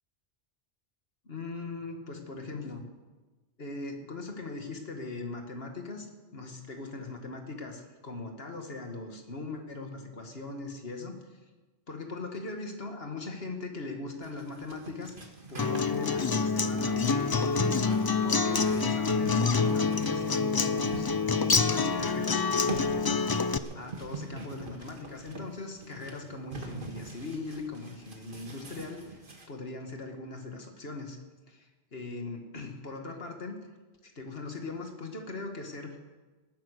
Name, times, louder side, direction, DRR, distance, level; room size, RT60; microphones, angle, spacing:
voice 1, 1.2-2.9 3.6-11.2 11.9-15.1 15.5-17.9 18.2-23.2 23.7-29.2 29.5-31.2 31.5-33.5 34.0-36.0, left 3 dB, 65° left, 3 dB, 2.1 m, -40 dB
sound 1, 14.2-29.5, right 3 dB, 50° right, 1.8 m, -44 dB
Acoustic guitar, 15.6-23.6, left 4 dB, 35° left, 0.4 m, -27 dB
18.5 x 10.0 x 6.6 m, 1.2 s
omnidirectional pair, 1.1 m